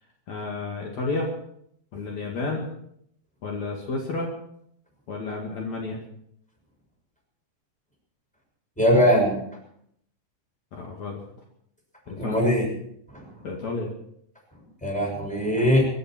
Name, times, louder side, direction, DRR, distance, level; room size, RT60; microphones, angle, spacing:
voice 1, 0.3-1.3 1.9-2.7 3.4-4.3 5.1-6.0 10.8-11.2 12.1-12.5 13.4-13.9, left 3 dB, 60° left, -1 dB, 3.5 m, -31 dB
voice 2, 8.8-9.3 12.1-12.7 13.1-13.3 14.8-15.8, equal, ahead, -1 dB, 6.0 m, -21 dB
24.5 x 12.0 x 4.5 m, 0.70 s
omnidirectional pair, 3.7 m